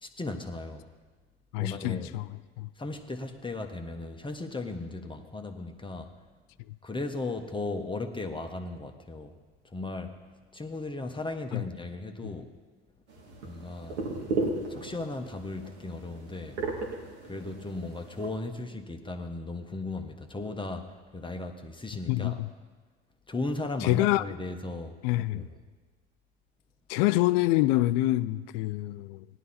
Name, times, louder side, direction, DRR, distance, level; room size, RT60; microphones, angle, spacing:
voice 1, 0.0-0.9 1.5-2.2 2.8-6.1 6.8-9.4 9.7-10.1 10.5-12.4 13.4-14.0 14.7-16.6 17.3-22.4 23.3-25.0 25.3-25.5, left 2 dB, 15° left, 1.2 m, -36 dB
voice 2, 1.5-2.3 2.6-2.7 11.5-11.6 12.2-12.3 22.1-22.5 23.8-24.2 25.0-25.5 26.9-29.3, left 16 dB, 70° left, 0.6 m, -26 dB
sound 1, 13.1-18.3, right 3 dB, 90° right, 2.3 m, -36 dB
17.0 x 11.0 x 4.3 m
hypercardioid pair, 75°, 32 cm